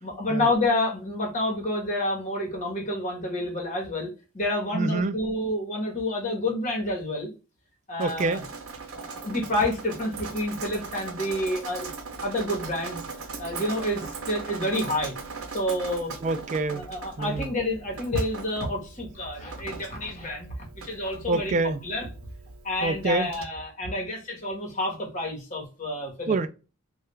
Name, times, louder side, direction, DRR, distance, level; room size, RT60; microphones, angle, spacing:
voice 1, 0.0-7.3 7.9-8.4 8.9-11.9 12.2-13.0 13.4-15.1 15.5-16.1 16.7-21.6 21.8-22.1 22.6-26.4, left 1 dB, 35° left, 1.2 m, -29 dB
voice 2, 4.7-5.2 8.0-8.4 16.2-16.9 17.2-17.5 21.3-21.8 22.8-23.3 26.3-26.5, right 3 dB, 35° right, 0.3 m, -26 dB
Drip, 8.0-23.4, right 4 dB, 75° right, 0.7 m, -40 dB
3.2 x 2.3 x 3.1 m
head